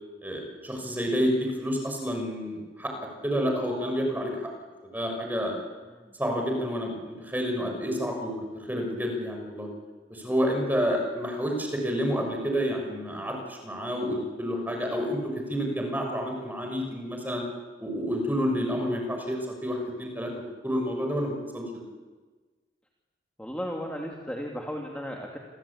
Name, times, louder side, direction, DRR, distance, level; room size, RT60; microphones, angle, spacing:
voice 1, 0.2-2.9 3.2-4.3 4.8-5.6 6.2-8.3 8.7-9.7 10.1-17.4 17.8-21.8, equal, 10° right, 2 dB, 6.3 m, -29 dB
voice 2, 5.8-6.2 23.4-25.4, equal, 5° left, 0 dB, 2.7 m, -35 dB
29.0 x 24.0 x 8.7 m, 1.3 s
head